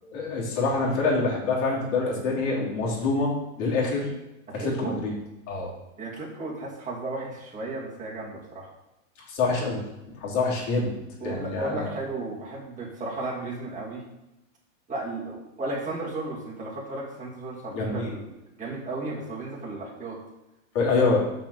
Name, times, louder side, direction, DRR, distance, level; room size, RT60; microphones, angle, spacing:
voice 1, 0.0-3.3 3.6-4.1 4.6-5.1 5.5-5.7 9.3-9.8 10.2-10.9 11.2-11.9 17.7-18.1 20.7-21.2, left 3 dB, 45° left, -4 dB, 3.3 m, -25 dB
voice 2, 4.5-5.0 6.0-8.7 11.2-14.1 14.9-20.2, right 2 dB, 20° right, -4 dB, 2.6 m, -34 dB
5.9 x 5.8 x 6.8 m, 0.96 s
hypercardioid pair, 125°, 41 cm